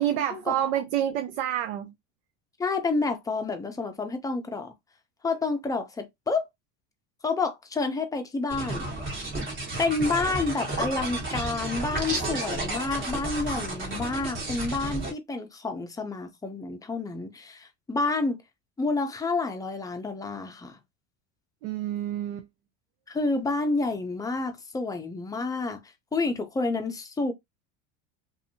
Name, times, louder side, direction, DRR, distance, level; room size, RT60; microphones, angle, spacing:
voice 1, 0.0-1.9 21.6-22.5, right 11 dB, 90° right, 0.5 m, -28 dB
voice 2, 2.6-4.7 5.2-6.5 7.2-8.9 9.8-18.4 18.8-20.8 23.1-25.8 26.1-27.3, left 3 dB, 10° left, 0.5 m, -29 dB
sound 1, 8.5-15.1, right 2 dB, 35° right, 1.3 m, -32 dB
2.6 x 2.6 x 2.6 m
supercardioid pair, 125°, 34 cm